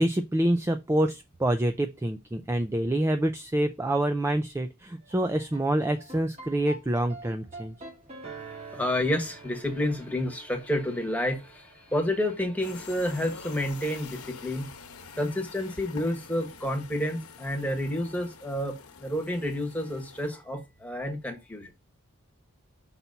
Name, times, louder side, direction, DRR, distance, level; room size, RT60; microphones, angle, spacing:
voice 1, 0.0-7.7, right 1 dB, 10° right, 0.4 m, -26 dB
sound 1, 5.0-13.3, right 3 dB, 30° right, 1.5 m, -47 dB
voice 2, 8.7-14.7 15.2-21.7, left 1 dB, 5° left, 1.4 m, -30 dB
sound 2, 12.6-20.3, left 5 dB, 85° left, 1.0 m, -46 dB
5.8 x 4.1 x 5.5 m
head